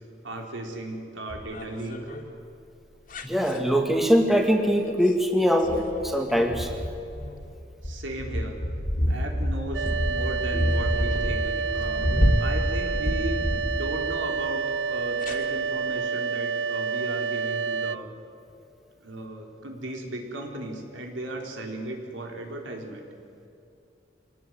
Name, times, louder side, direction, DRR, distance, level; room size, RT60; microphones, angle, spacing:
voice 1, 0.2-2.1 7.8-8.6 9.1-12.1 12.4-18.1 19.0-23.0, right 1 dB, 90° right, 2 dB, 4.3 m, -36 dB
sound 1, 1.3-2.2 3.1-3.6 4.9-5.1 5.4-14.2 15.2-15.4, equal, 45° left, 2.8 m, -28 dB
voice 2, 3.2-6.7, equal, ahead, 3 dB, 2.0 m, -22 dB
sound 2, 9.7-18.0, right 6 dB, 65° right, 0.6 m, -29 dB
25.5 x 19.0 x 9.5 m, 2.7 s
head